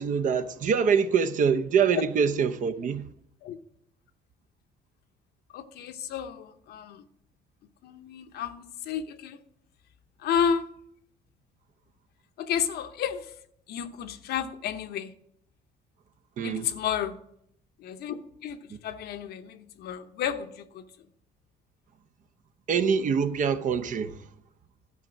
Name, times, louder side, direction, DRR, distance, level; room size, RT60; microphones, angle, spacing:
voice 1, 0.0-3.1 16.4-16.7 22.7-24.2, right 6 dB, 50° right, 0.7 m, -25 dB
voice 2, 5.5-7.0 7.8-9.4 10.2-10.7 12.4-13.3 13.7-15.1 16.4-17.2 17.8-20.8, left 8 dB, 70° left, 0.8 m, -32 dB
12.0 x 5.4 x 6.2 m
cardioid pair, 110°, 17 cm